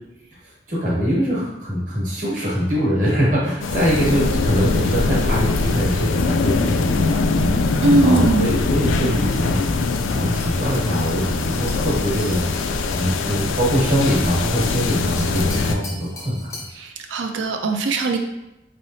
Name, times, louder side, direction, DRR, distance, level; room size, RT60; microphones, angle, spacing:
voice 1, 0.7-7.1 7.3-7.4 8.0-9.6 10.1-12.4 12.9-16.6, equal, 45° right, -6 dB, 1.3 m, -22 dB
sound 1, 3.6-15.7, left 3 dB, 85° left, 0.3 m, -22 dB
voice 2, 7.8-8.5 16.8-18.2, right 2 dB, 70° right, 5 dB, 0.4 m, -20 dB
sound 2, 10.4-16.8, left 2 dB, 15° left, 0.5 m, -40 dB
3.8 x 3.4 x 2.7 m, 0.93 s
head